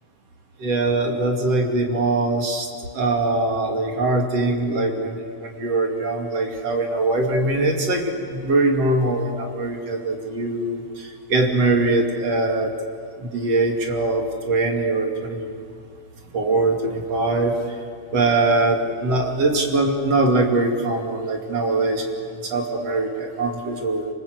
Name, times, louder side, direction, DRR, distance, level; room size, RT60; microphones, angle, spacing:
voice 1, 0.6-2.7 2.9-12.7 13.2-15.7 16.3-17.8 18.1-24.1, right 2 dB, 50° right, 2 dB, 3.6 m, -22 dB
28.0 x 26.5 x 8.1 m, 2.1 s
omnidirectional pair, 3.6 m